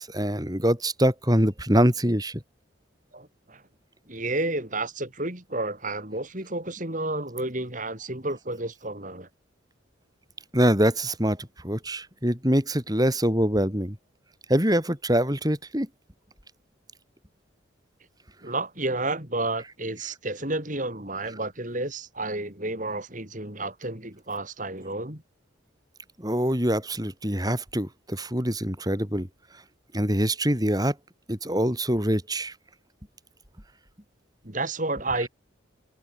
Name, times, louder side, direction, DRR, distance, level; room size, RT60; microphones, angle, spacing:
voice 1, 0.0-2.4 10.5-14.0 14.5-15.9 26.2-29.3 29.9-30.9 31.3-32.5, equal, 20° right, 6.8 m, -24 dB
voice 2, 3.1-3.6 4.1-9.3 18.4-25.2 34.4-35.3, right 2 dB, 40° right, 4.1 m, -31 dB
open air
head